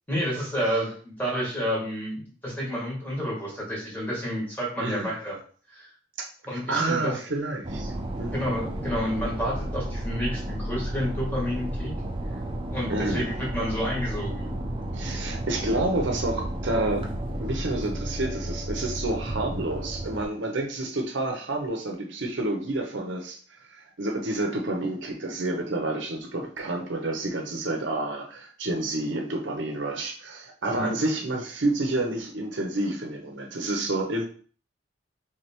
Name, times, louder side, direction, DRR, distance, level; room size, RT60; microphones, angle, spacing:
voice 1, 0.1-5.4 5.7-5.9 6.5-7.2 8.3-11.9 12.7-14.5 30.7-30.9, equal, 10° left, -5 dB, 1.8 m, -30 dB
voice 2, 4.8-5.2 6.2-6.3 6.5-8.5 12.9-13.3 14.9-17.0 17.4-34.3, right 2 dB, 65° right, 2 dB, 0.8 m, -29 dB
sound 1, 7.6-20.3, right 1 dB, 25° right, 0.7 m, -32 dB
3.5 x 3.3 x 4.4 m, 0.43 s
head